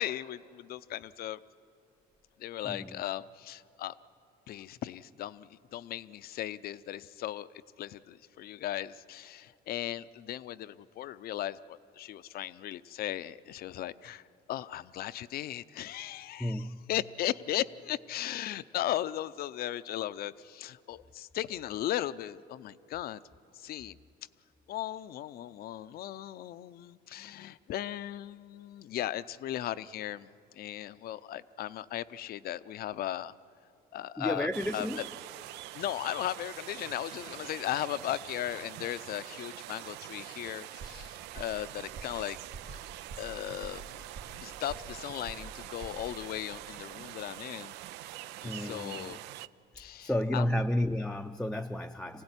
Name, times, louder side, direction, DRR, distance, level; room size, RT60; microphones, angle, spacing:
voice 1, 0.0-1.4 2.4-3.9 4.5-7.5 7.8-14.2 14.5-23.2 23.5-24.0 24.7-30.3 30.6-33.3 33.9-35.1 35.7-42.4 42.7-42.8 43.2-44.0 44.4-47.7 48.4-49.2 49.8-50.4, left 13 dB, 65° left, 0.6 m, -37 dB
voice 2, 2.6-3.0 16.4-16.9 34.2-35.0 48.4-49.2 50.0-52.2, left 1 dB, 5° left, 0.5 m, -32 dB
train cross countryside, 34.5-49.5, right 14 dB, 90° right, 0.5 m, -45 dB
sound 1, 40.8-41.1 41.4-41.6 42.0-42.2 42.5-42.8 43.1-43.4 43.6-44.4 44.7-45.0 45.3-45.6 45.8-46.1, right 4 dB, 70° right, 2.0 m, -45 dB
26.0 x 16.5 x 9.7 m
cardioid pair, 110°, 17 cm